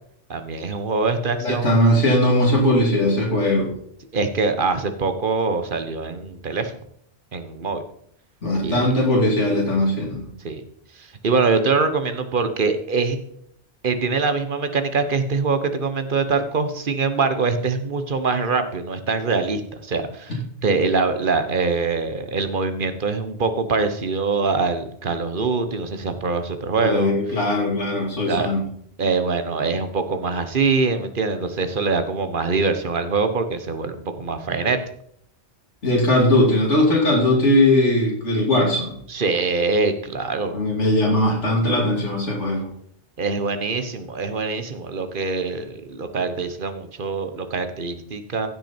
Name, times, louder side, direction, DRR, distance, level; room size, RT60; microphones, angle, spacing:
voice 1, 0.3-1.7 4.1-6.7 7.3-7.8 8.6-8.9 10.4-10.6 11.0-13.2 13.8-27.1 28.3-28.5 29.0-34.8 39.1-40.6 43.2-48.5, right 4 dB, 50° right, 9 dB, 1.2 m, -23 dB
voice 2, 1.4-3.7 8.4-10.2 26.8-28.6 35.8-39.0 40.5-42.7, left 1 dB, 80° left, -3 dB, 3.0 m, -19 dB
15.5 x 6.2 x 4.4 m, 0.68 s
omnidirectional pair, 1.2 m